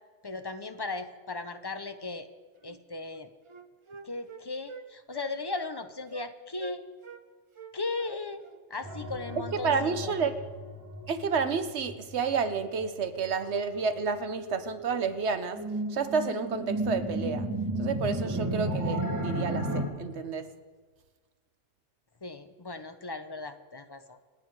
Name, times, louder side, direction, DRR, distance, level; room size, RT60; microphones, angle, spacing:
voice 1, 0.2-2.3 2.6-3.3 4.0-6.8 7.7-8.4 8.7-10.1 22.2-24.2, left 3 dB, 25° left, 9 dB, 0.6 m, -37 dB
Wind instrument woodwind instrument, 2.6-2.8 3.1-4.9 5.1-5.4 5.6-5.8 6.1-6.3 6.6-7.2 7.6-9.4, right 3 dB, 35° right, 0.6 m, -45 dB
sound 1, 8.8-19.8, right 1 dB, 15° right, 1.9 m, -34 dB
voice 2, 9.6-10.3 11.1-15.6 15.9-17.5 17.8-20.5, right 5 dB, 80° right, 10 dB, 1.2 m, -30 dB
27.0 x 9.4 x 4.7 m, 1.4 s
omnidirectional pair, 1.1 m